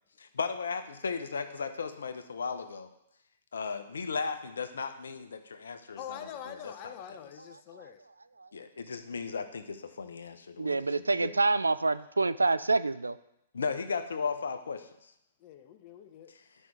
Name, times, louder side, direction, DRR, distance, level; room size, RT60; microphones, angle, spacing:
voice 1, 0.2-2.9 3.5-7.2 8.5-10.8 11.1-11.3 13.5-14.9, left 5 dB, 75° left, 9 dB, 0.8 m, -36 dB
voice 2, 6.0-8.0 15.4-16.3, left 9 dB, 40° left, 8 dB, 0.9 m, -44 dB
voice 3, 10.6-13.2, right 3 dB, 85° right, 14 dB, 0.4 m, -27 dB
11.0 x 5.5 x 4.6 m, 0.78 s
figure-of-eight pair, 115°, 0 cm